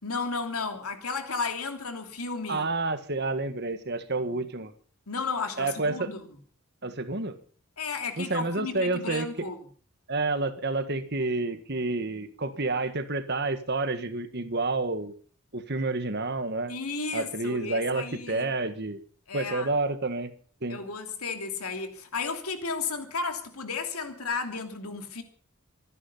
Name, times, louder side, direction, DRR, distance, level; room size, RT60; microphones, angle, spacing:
voice 1, 0.0-2.7 5.1-6.3 7.8-9.6 16.7-18.5 19.3-19.7 20.7-25.2, left 4 dB, 90° left, 3.0 m, -33 dB
voice 2, 2.5-4.7 5.6-6.1 6.8-7.4 8.2-9.3 10.1-15.1 15.5-16.7 17.1-19.0 19.3-20.3 20.6-20.8, right 3 dB, 50° right, 1.6 m, -29 dB
25.0 x 10.0 x 5.6 m
head